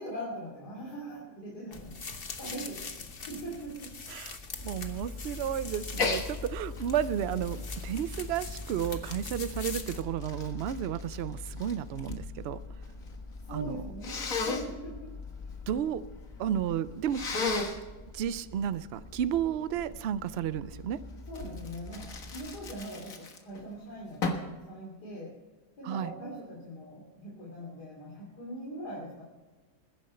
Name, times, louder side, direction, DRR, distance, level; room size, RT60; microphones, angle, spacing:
voice 1, 0.0-2.9 3.3-3.9 13.4-15.1 21.3-25.4 25.8-29.2, right 1 dB, 75° left, -4 dB, 3.4 m, -41 dB
sound 1, 1.7-10.0, left 4 dB, 40° left, 1.3 m, -43 dB
voice 2, 4.1-12.6 13.5-13.8 15.7-16.0 16.4-17.2 18.1-21.0 25.8-26.1, right 9 dB, 75° right, 15 dB, 0.6 m, -32 dB
sound 2, 4.6-22.8, left 3 dB, 20° left, 1.0 m, -44 dB
Sneeze, 5.9-6.3 6.7-9.1 9.8-12.2 12.5-13.2 14.0-14.7 17.1-17.8 21.3-23.6 24.2-24.5, left 4 dB, 55° left, 1.9 m, -34 dB
21.0 x 10.0 x 4.3 m, 1.3 s
omnidirectional pair, 1.7 m